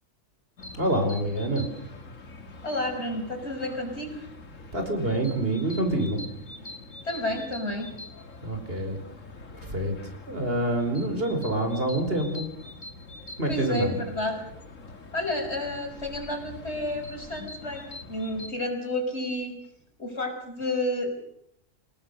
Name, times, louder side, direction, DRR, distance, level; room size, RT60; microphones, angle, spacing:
sound 1, 0.6-18.5, left 2 dB, 85° left, 2.3 m, -44 dB
voice 1, 0.7-1.7 4.7-6.2 8.4-9.0 9.6-12.5 13.4-14.0, right 1 dB, 50° right, 5 dB, 4.9 m, -27 dB
voice 2, 2.6-4.2 7.0-7.9 13.5-14.4 15.1-19.6 20.0-21.1, left 1 dB, 60° left, 3 dB, 6.2 m, -30 dB
28.0 x 19.0 x 6.7 m, 0.75 s
omnidirectional pair, 1.3 m